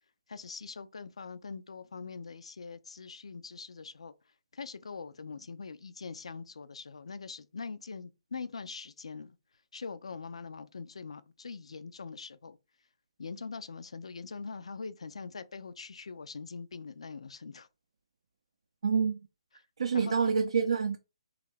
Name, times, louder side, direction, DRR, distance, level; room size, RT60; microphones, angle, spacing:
voice 1, 0.3-4.1 4.5-9.4 9.7-12.6 13.2-17.7 19.9-20.3, left 5 dB, 70° left, 0.4 m, -43 dB
voice 2, 18.8-19.2 19.8-21.0, right 6 dB, 65° right, 0.4 m, -27 dB
3.3 x 2.4 x 3.2 m
figure-of-eight pair, 135°, 3 cm